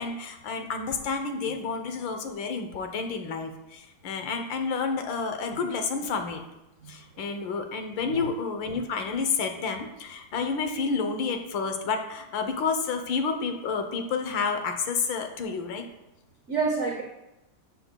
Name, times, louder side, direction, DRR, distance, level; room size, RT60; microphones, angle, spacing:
voice 1, 0.0-6.4 6.9-15.9, left 5 dB, 70° left, 6 dB, 1.5 m, -30 dB
voice 2, 6.8-7.2 8.0-8.3 16.5-17.0, right 4 dB, 80° right, 1 dB, 0.6 m, -29 dB
11.5 x 7.0 x 2.2 m, 0.93 s
omnidirectional pair, 2.4 m